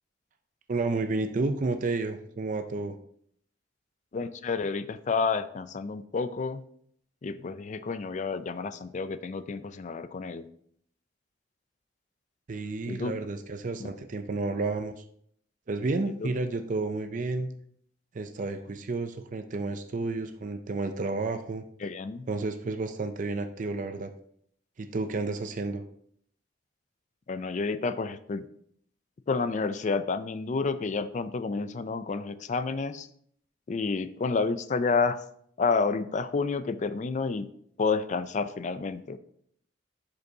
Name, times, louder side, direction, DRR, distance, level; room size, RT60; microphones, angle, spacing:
voice 1, 0.7-3.0 12.5-15.0 15.7-17.5 18.1-21.6 22.3-24.1 24.8-25.8, right 3 dB, 45° right, 8 dB, 0.5 m, -31 dB
voice 2, 4.1-6.6 7.2-10.5 12.9-13.2 13.8-13.9 16.0-16.3 21.8-22.3 27.3-28.5 29.3-33.1 33.7-35.2 35.6-37.5 37.8-39.2, left 4 dB, 40° left, 13 dB, 0.4 m, -30 dB
10.5 x 5.2 x 2.7 m, 0.66 s
head